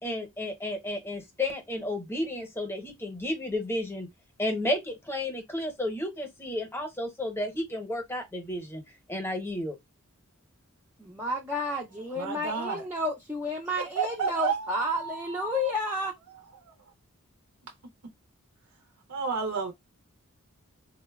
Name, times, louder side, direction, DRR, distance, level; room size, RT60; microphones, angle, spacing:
voice 1, 0.0-4.1 4.4-8.8 9.1-9.8, left 1 dB, 10° left, 0.7 m, -32 dB
voice 2, 11.0-16.1, left 1 dB, 10° right, 0.3 m, -31 dB
voice 3, 12.1-12.9 14.0-15.7 16.3-16.7 19.1-19.7, right 5 dB, 80° right, 0.5 m, -32 dB
3.6 x 2.1 x 2.2 m
head